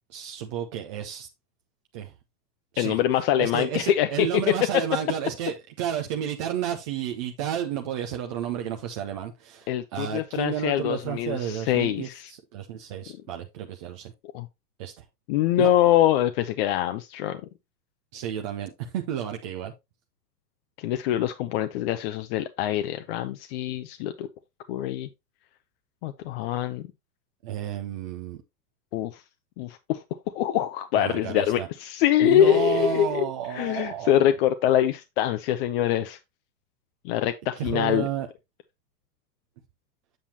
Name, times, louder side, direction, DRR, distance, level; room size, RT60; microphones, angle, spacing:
voice 1, 0.1-1.3 1.9-2.1 2.7-3.0 3.4-14.1 14.8-15.0 15.6-15.7 18.1-19.7 27.4-28.4 30.9-31.7 32.2-34.3 37.6-38.3, right 9 dB, 20° right, 0.3 m, -31 dB
voice 2, 2.8-4.5 9.7-12.3 14.3-14.5 15.3-17.4 20.8-24.3 24.7-25.1 26.0-26.9 28.9-29.2 29.6-30.0 30.3-33.3 33.5-36.2 37.0-38.1, left 11 dB, 40° left, 0.6 m, -24 dB
7.6 x 6.9 x 2.7 m
hypercardioid pair, 105°, 50 cm